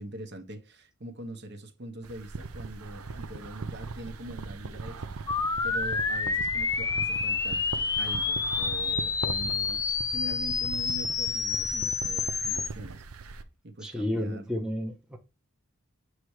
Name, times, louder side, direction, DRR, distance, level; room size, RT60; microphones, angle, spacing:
voice 1, 0.0-5.1 5.6-7.7 8.0-9.8 10.1-13.0 13.6-14.6, right 1 dB, 50° right, 1.1 m, -42 dB
sound 1, 2.0-13.4, right 4 dB, 85° right, 0.7 m, -40 dB
sound 2, 5.3-12.7, left 5 dB, 15° left, 0.3 m, -29 dB
voice 2, 13.8-15.2, left 1 dB, 5° right, 0.7 m, -31 dB
7.7 x 3.2 x 4.8 m
head